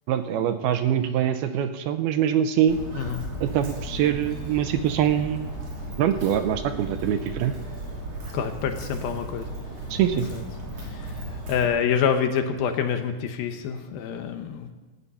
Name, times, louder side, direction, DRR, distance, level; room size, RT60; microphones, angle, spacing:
voice 1, 0.1-2.8 3.4-5.5 6.0-7.5 9.9-10.3, right 10 dB, 75° right, 9 dB, 2.5 m, -24 dB
Walk footsteps, 2.7-11.6, right 1 dB, 40° right, 3.8 m, -35 dB
voice 2, 2.9-3.3 8.3-9.5 10.1-10.4 10.8-14.7, left 7 dB, 70° left, 7 dB, 2.6 m, -27 dB
18.0 x 14.0 x 5.6 m, 1.2 s
omnidirectional pair, 4.8 m